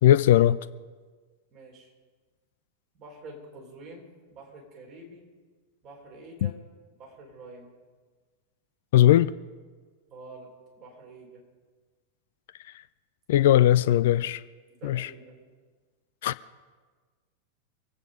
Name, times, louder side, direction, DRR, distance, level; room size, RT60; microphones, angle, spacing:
voice 1, 0.0-0.6 6.4-6.5 8.9-9.3 13.3-14.4 14.8-15.1 16.2-16.3, left 12 dB, 55° left, 0.4 m, -19 dB
voice 2, 1.5-1.9 2.9-5.3 5.8-6.6 7.0-7.7 10.1-11.4 14.8-15.4, right 2 dB, 35° right, 4.3 m, -47 dB
23.5 x 9.1 x 5.1 m
figure-of-eight pair, 90°, 0 cm